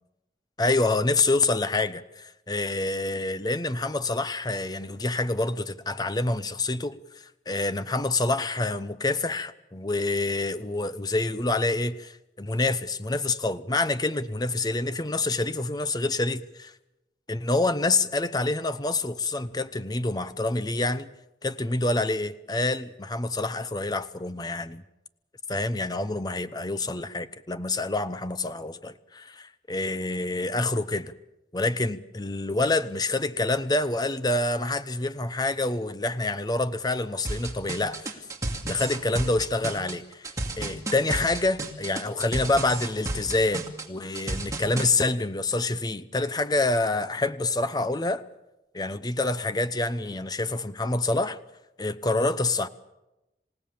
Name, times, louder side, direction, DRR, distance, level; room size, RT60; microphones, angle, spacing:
voice 1, 0.6-7.0 7.5-16.7 17.3-21.1 21.4-24.8 25.5-31.1 31.5-38.2 38.6-48.2 48.7-51.4 51.8-52.7, left 2 dB, 20° left, 0.8 m, -27 dB
sound 1, 37.2-44.9, right 2 dB, 20° right, 2.5 m, -32 dB
27.5 x 17.0 x 7.1 m
head